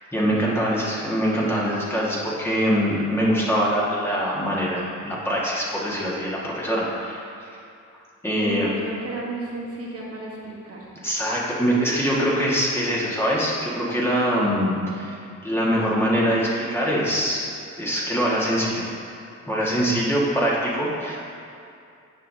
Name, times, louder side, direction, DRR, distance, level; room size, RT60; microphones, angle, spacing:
voice 1, 0.1-7.5 8.2-8.7 11.0-15.2 15.4-17.4 17.8-18.9 19.5-21.2, equal, 10° left, -6 dB, 1.7 m, -23 dB
voice 2, 8.4-10.9 19.6-20.1, right 2 dB, 45° right, -4 dB, 1.2 m, -33 dB
9.5 x 5.7 x 2.8 m, 2.4 s
cardioid pair, 70°, 32 cm